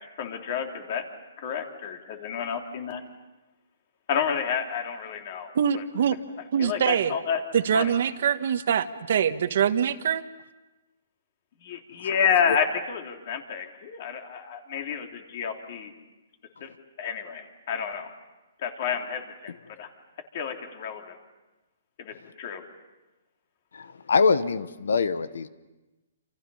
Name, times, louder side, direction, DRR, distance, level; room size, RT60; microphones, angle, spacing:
voice 1, 0.2-1.0 1.4-3.0 4.1-5.8 6.6-7.4 7.7-7.9 11.6-15.9 16.6-16.7 17.0-18.1 18.6-19.5 19.8-19.9 20.3-21.1 22.0-22.6, left 7 dB, 40° left, 4 dB, 3.2 m, -30 dB
voice 2, 5.5-6.2 6.5-7.1 7.5-10.2, right 8 dB, 55° right, 10 dB, 1.4 m, -24 dB
voice 3, 23.7-25.5, left 4 dB, 85° left, 14 dB, 1.2 m, -24 dB
28.0 x 28.0 x 5.6 m, 1.1 s
hypercardioid pair, 160°, 0 cm